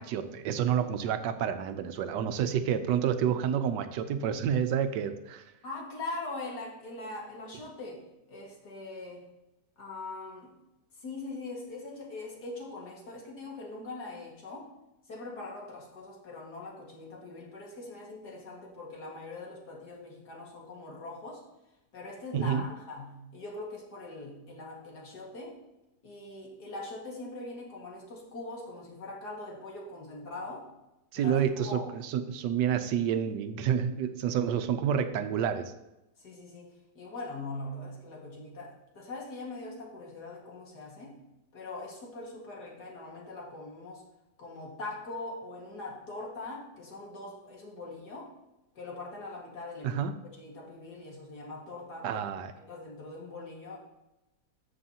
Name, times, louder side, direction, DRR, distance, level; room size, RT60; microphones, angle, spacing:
voice 1, 0.0-5.4 22.3-22.7 31.1-35.7 49.8-50.1 52.0-52.5, right 8 dB, 85° right, 10 dB, 1.3 m, -29 dB
voice 2, 5.6-9.3 9.8-10.5 11.0-14.7 15.1-21.4 21.9-25.6 26.0-30.7 31.1-31.9 36.2-41.2 41.5-44.0 44.4-48.3 48.8-52.2 52.6-53.8, left 2 dB, 70° left, -2 dB, 2.4 m, -42 dB
13.0 x 6.3 x 2.8 m, 0.96 s
omnidirectional pair, 1.8 m